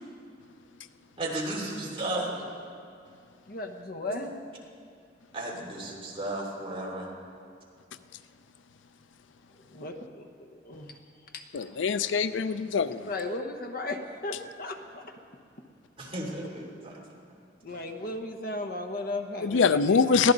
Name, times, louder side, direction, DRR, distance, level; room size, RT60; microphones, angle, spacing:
voice 1, 1.2-2.4 5.3-7.1 11.6-11.7 16.0-17.0, right 1 dB, 30° right, -3 dB, 3.1 m, -34 dB
voice 2, 3.5-4.4 9.7-11.0 11.3-11.4 13.1-15.1 17.6-20.0, left 2 dB, 50° left, 5 dB, 1.0 m, -36 dB
voice 3, 11.5-13.1 19.4-20.3, left 5 dB, 80° left, 13 dB, 0.5 m, -24 dB
22.0 x 15.5 x 4.0 m, 2.4 s
head